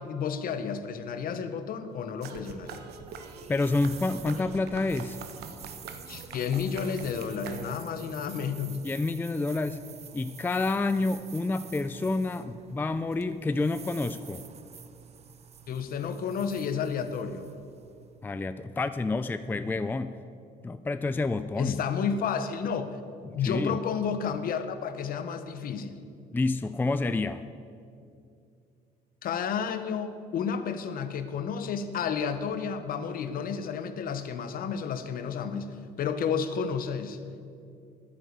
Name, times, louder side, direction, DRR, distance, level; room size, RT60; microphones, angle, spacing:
voice 1, 0.0-2.8 6.1-8.8 15.7-17.5 21.6-23.0 23.3-26.0 29.2-37.2, left 6 dB, 60° left, 10 dB, 1.1 m, -31 dB
sound 1, 2.2-18.3, right 7 dB, 40° right, 0.8 m, -49 dB
sound 2, 2.2-8.0, right 5 dB, 70° right, 1.1 m, -43 dB
voice 2, 3.5-5.2 8.8-9.8 10.1-14.4 18.2-20.1 20.6-21.8 23.2-23.7 26.3-27.5, left 3 dB, 10° left, 12 dB, 0.4 m, -29 dB
11.0 x 9.7 x 8.0 m, 2.4 s
cardioid pair, 110°, 17 cm